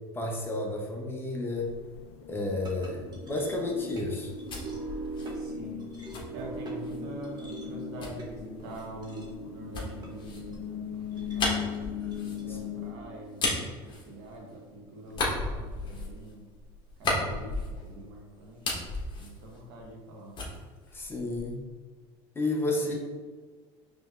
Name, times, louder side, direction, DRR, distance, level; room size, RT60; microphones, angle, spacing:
voice 1, 0.1-1.7 2.3-4.3 12.5-12.6 20.9-21.6 22.3-22.9, left 2 dB, 15° left, 0 dB, 0.8 m, -31 dB
sound 1, 1.5-12.9, left 10 dB, 80° left, 0.4 m, -41 dB
sound 2, 2.6-15.0, right 2 dB, 30° right, 0.9 m, -42 dB
voice 2, 2.9-3.2 5.3-5.9 6.3-11.7 12.2-16.4 17.0-18.9 19.2-20.4 22.9-23.0, right 1 dB, 80° right, -1 dB, 1.1 m, -45 dB
sound 3, 4.1-7.1 8.0-14.7 15.1-18.1 18.4-20.1 20.3-21.7, left 2 dB, 35° left, 1.2 m, -35 dB
4.9 x 3.0 x 2.4 m, 1.5 s
supercardioid pair, 105°, 14 cm